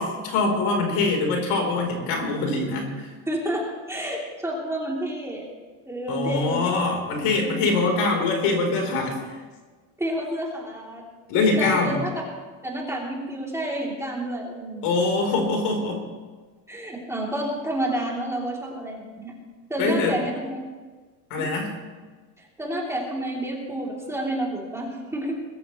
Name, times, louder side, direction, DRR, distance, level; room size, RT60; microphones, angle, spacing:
voice 1, 0.0-3.1 6.1-9.1 11.3-12.0 14.8-16.0 19.8-20.1 21.3-21.8, left 3 dB, 70° left, 2 dB, 4.0 m, -23 dB
voice 2, 3.3-5.5 5.9-6.8 7.2-8.0 10.0-11.0 11.6-12.1 12.6-14.9 16.7-19.3 19.7-20.6 21.4-21.5 22.4-25.3, right 1 dB, 5° right, -3 dB, 3.2 m, -30 dB
21.5 x 13.5 x 3.2 m, 1.4 s
cardioid pair, 130°, 42 cm